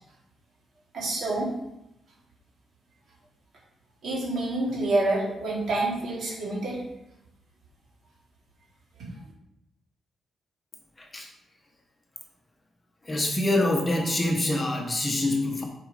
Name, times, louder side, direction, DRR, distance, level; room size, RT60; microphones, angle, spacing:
voice 1, 0.9-1.5 4.0-6.8 9.0-9.1, right 2 dB, 55° right, -5 dB, 3.8 m, -27 dB
voice 2, 11.0-11.3 13.0-15.7, left 1 dB, 20° left, 1 dB, 1.1 m, -25 dB
10.0 x 5.2 x 4.9 m, 0.87 s
wide cardioid pair, 155°, 0 cm